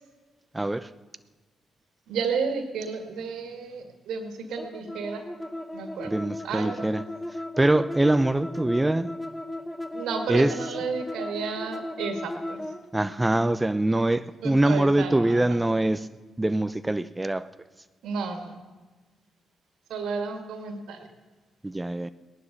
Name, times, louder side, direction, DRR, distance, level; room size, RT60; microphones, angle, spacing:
voice 1, 0.5-0.9 6.1-7.0 7.6-9.2 10.3-10.6 12.9-16.1 16.4-17.5 21.6-22.1, right 1 dB, 15° right, 0.6 m, -23 dB
voice 2, 2.1-5.2 5.7-6.2 6.4-6.8 9.9-12.6 14.4-15.6 18.0-18.5 19.9-21.1, right 5 dB, 75° right, 2.0 m, -32 dB
sound 1, 4.6-12.8, left 1 dB, 15° left, 2.5 m, -36 dB
18.0 x 11.0 x 6.7 m
hypercardioid pair, 40°, 0 cm